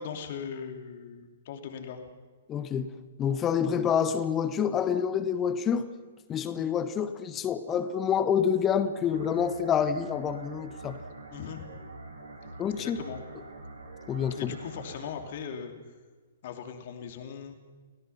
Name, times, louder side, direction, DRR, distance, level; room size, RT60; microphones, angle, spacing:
voice 1, 0.0-2.0 11.3-11.6 12.4-13.2 14.4-15.7 16.4-17.6, left 7 dB, 45° left, 5 dB, 2.9 m, -39 dB
voice 2, 2.5-2.9 3.2-5.9 6.3-11.0 12.6-13.0 14.1-14.5, left 8 dB, 20° left, 11 dB, 1.3 m, -27 dB
sound 1, 9.0-15.1, right 2 dB, 85° right, 6.2 m, -45 dB
30.0 x 18.0 x 5.8 m, 1.4 s
figure-of-eight pair, 120°, 0 cm